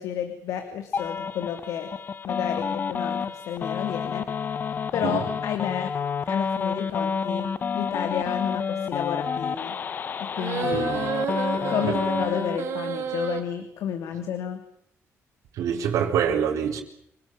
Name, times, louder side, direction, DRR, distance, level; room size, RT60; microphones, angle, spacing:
voice 1, 0.0-1.9 2.2-4.3 4.9-5.9 6.3-7.5 7.7-9.8 10.2-10.9 11.7-14.6, left 9 dB, 90° left, 7 dB, 2.7 m, -31 dB
sound 1, 0.9-12.6, left 6 dB, 35° left, 1.0 m, -29 dB
sound 2, 10.4-13.4, right 7 dB, 55° right, 4.0 m, -30 dB
voice 2, 10.7-11.1 11.8-12.0 15.5-16.8, right 8 dB, 90° right, 0 dB, 4.3 m, -26 dB
27.5 x 18.5 x 9.1 m, 0.73 s
cardioid pair, 165°, 5 cm